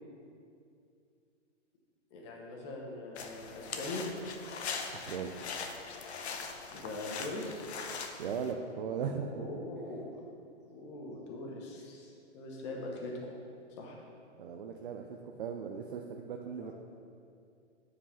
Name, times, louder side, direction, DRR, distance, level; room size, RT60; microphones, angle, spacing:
voice 1, 2.1-4.0 6.7-7.6 9.3-10.1 10.7-13.1 13.8-13.9 16.6-16.7, left 2 dB, 25° left, -1 dB, 1.0 m, -42 dB
sound 1, 3.2-8.5, left 5 dB, 65° left, 0.9 m, -41 dB
voice 2, 4.9-5.3 8.2-9.5 14.4-16.7, right 6 dB, 45° right, 3 dB, 0.5 m, -38 dB
8.4 x 4.9 x 5.6 m, 2.4 s
hypercardioid pair, 165°, 36 cm